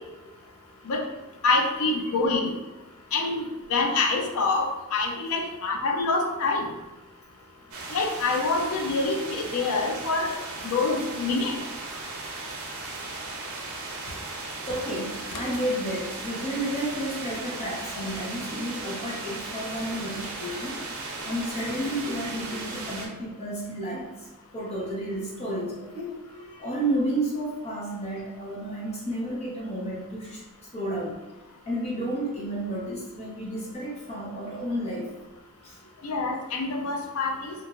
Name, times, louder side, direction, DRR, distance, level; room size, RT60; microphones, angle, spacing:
voice 1, 1.4-2.5 3.1-6.6 7.9-10.4 10.6-11.6 36.0-37.5, left 3 dB, 70° left, 1 dB, 0.5 m, -26 dB
sound 1, 7.7-23.1, right 3 dB, 65° right, 0.6 m, -36 dB
voice 2, 14.7-20.8 21.2-24.1 24.5-30.4 30.7-31.2 31.7-35.1 35.6-35.8, right 1 dB, 30° left, -5 dB, 0.7 m, -31 dB
3.0 x 2.4 x 2.4 m, 1.1 s
head